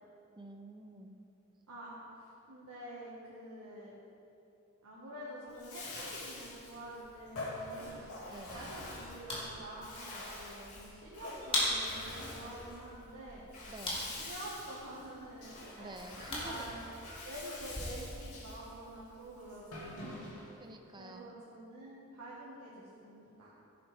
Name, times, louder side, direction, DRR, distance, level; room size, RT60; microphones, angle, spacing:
voice 1, 0.4-1.2 8.3-8.7 13.7-14.0 15.8-16.7 20.6-21.3, right 1 dB, 20° right, 5 dB, 0.7 m, -49 dB
voice 2, 1.7-3.9 4.8-8.1 8.5-13.4 14.0-16.9 17.2-20.2 21.0-23.5, right 1 dB, 85° right, -7 dB, 1.8 m, -48 dB
Bathtub (filling or washing), 5.5-20.6, left 2 dB, 75° left, 2.7 m, -46 dB
sound 1, 7.8-17.8, left 1 dB, 25° left, 2.7 m, -41 dB
13.0 x 11.0 x 3.6 m, 2.8 s
head